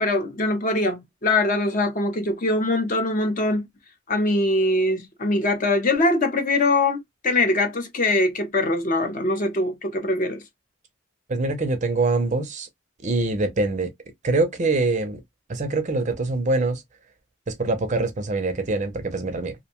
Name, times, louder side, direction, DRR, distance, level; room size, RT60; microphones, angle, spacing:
voice 1, 0.0-3.7 4.1-7.0 7.2-10.4, left 2 dB, 40° left, 0.6 m, -22 dB
voice 2, 11.3-12.7 13.0-13.9 14.2-15.2 15.5-16.8 17.5-19.5, right 3 dB, 35° right, 0.5 m, -24 dB
2.6 x 2.2 x 2.8 m
head